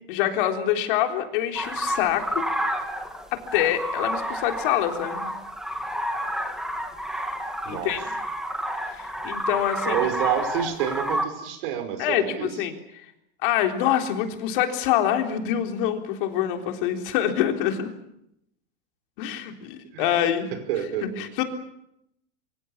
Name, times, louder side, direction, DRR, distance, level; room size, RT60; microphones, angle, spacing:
voice 1, 0.1-2.4 3.3-5.3 7.7-8.0 8.9-10.0 12.0-12.7 13.4-17.9 19.2-20.5 21.0-21.4, left 11 dB, 55° left, 5 dB, 3.7 m, -25 dB
sound 1, 1.6-11.3, equal, ahead, 2.2 m, -30 dB
voice 2, 7.7-8.0 9.8-12.5 19.9-20.2 20.7-21.3, right 9 dB, 60° right, 9 dB, 5.7 m, -28 dB
25.0 x 25.0 x 7.4 m, 0.79 s
supercardioid pair, 160°, 31 cm